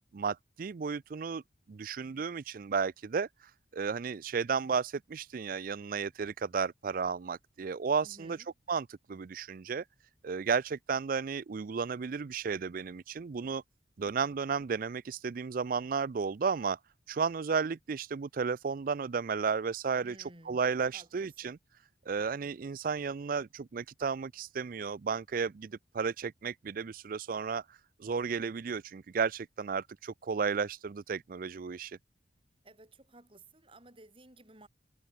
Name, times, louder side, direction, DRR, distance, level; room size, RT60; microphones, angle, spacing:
voice 1, 0.1-1.4 1.7-8.4 8.7-9.8 10.2-13.6 14.0-16.8 17.1-21.6 22.1-32.0, right 5 dB, 50° right, 0.4 m, -33 dB
voice 2, 8.0-8.5 20.0-20.6 20.9-21.5 32.6-34.7, right 2 dB, 30° right, 6.2 m, -56 dB
head